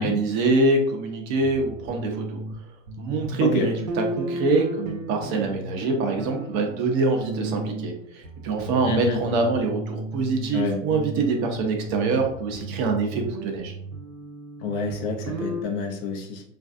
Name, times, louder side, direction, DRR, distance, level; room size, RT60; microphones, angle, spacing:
voice 1, 0.0-2.4 3.0-13.7, right 3 dB, 35° right, 3 dB, 0.5 m, -24 dB
sound 1, 1.3-2.5 2.9-7.9 8.2-10.6 10.9-15.6, right 2 dB, 85° right, 0.7 m, -35 dB
voice 2, 8.8-9.2 10.5-10.8 14.6-16.4, left 4 dB, 35° left, 2 dB, 0.5 m, -28 dB
3.2 x 2.5 x 2.4 m, 0.69 s
hypercardioid pair, 110°, 40 cm